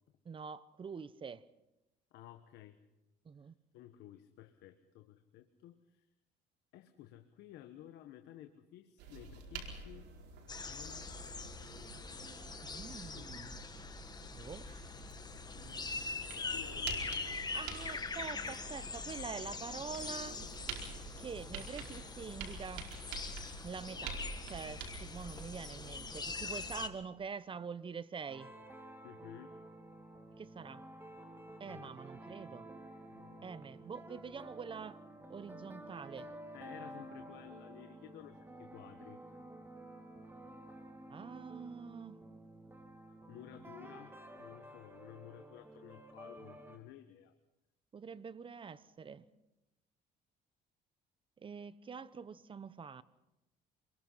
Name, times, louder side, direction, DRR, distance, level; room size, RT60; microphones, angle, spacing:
voice 1, 0.2-1.4 3.2-3.5 12.6-13.6 14.3-14.7 17.5-20.4 21.2-22.9 23.6-28.5 30.4-30.8 31.6-32.7 33.4-35.0 35.3-36.3 41.1-42.2 47.9-49.3 51.4-53.0, right 6 dB, 30° right, 1.0 m, -45 dB
voice 2, 2.1-2.8 3.7-6.1 6.7-10.1 10.6-11.1 13.1-13.3 15.5-15.8 16.2-17.6 29.0-29.5 31.6-32.0 33.1-33.4 36.5-39.2 43.3-47.3, left 12 dB, 85° left, 1.4 m, -54 dB
sound 1, 9.0-26.9, right 4 dB, 90° right, 4.7 m, -48 dB
sound 2, 10.5-26.9, left 4 dB, 25° left, 1.8 m, -43 dB
sound 3, 28.3-46.8, right 1 dB, 15° right, 2.9 m, -52 dB
26.5 x 22.0 x 5.7 m
cardioid pair, 110°, 17 cm